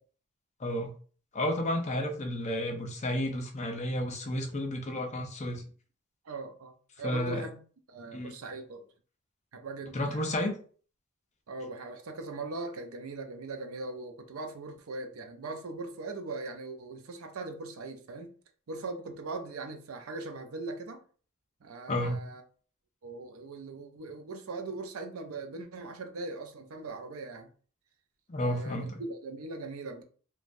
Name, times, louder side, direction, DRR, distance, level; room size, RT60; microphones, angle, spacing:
voice 1, 0.6-0.9 1.3-5.6 7.0-7.4 8.1-8.3 9.9-10.5 21.9-22.2 28.3-29.0, left 1 dB, 35° left, 0.5 m, -31 dB
voice 2, 6.2-7.6 7.9-8.9 9.5-10.3 11.5-18.3 18.7-21.0 21.6-22.4 23.0-27.5 28.4-30.0, right 3 dB, 80° right, 0.5 m, -40 dB
3.2 x 2.3 x 2.5 m
head